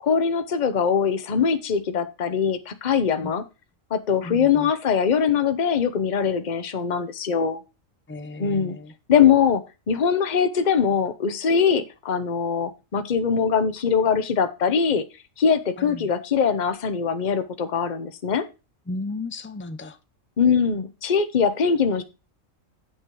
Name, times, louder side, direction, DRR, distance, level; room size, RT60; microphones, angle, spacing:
voice 1, 0.0-3.4 3.9-7.6 8.4-8.8 9.1-15.0 15.4-18.4 20.4-22.0, left 6 dB, 40° left, 0.9 m, -22 dB
voice 2, 4.2-4.7 8.1-8.9 15.8-16.1 18.9-20.0, left 2 dB, 15° left, 0.5 m, -35 dB
8.5 x 6.1 x 4.7 m
omnidirectional pair, 1.4 m